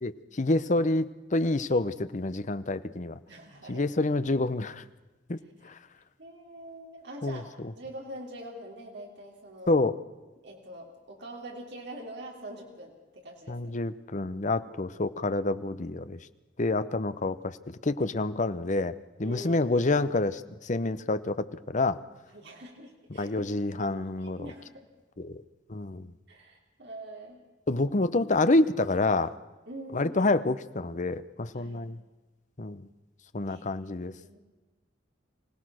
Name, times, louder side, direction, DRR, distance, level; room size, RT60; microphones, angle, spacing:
voice 1, 0.0-3.2 3.7-4.8 5.3-5.4 5.6-5.7 7.2-7.4 9.7-9.9 13.5-16.2 16.6-18.9 19.2-22.0 23.1-24.5 25.2-25.4 25.7-26.1 27.7-29.3 29.9-32.0 32.6-32.8 33.3-34.1, left 2 dB, 40° left, 13 dB, 0.8 m, -28 dB
voice 2, 3.3-3.9 5.6-5.7 6.2-7.5 7.7-9.8 10.4-13.6 19.2-19.7 22.3-23.4 23.8-24.9 26.3-27.4 29.7-30.2 31.5-31.8 33.4-33.7 34.0-34.4, right 1 dB, 60° right, 0 dB, 3.4 m, -44 dB
25.0 x 17.5 x 6.3 m, 1.2 s
head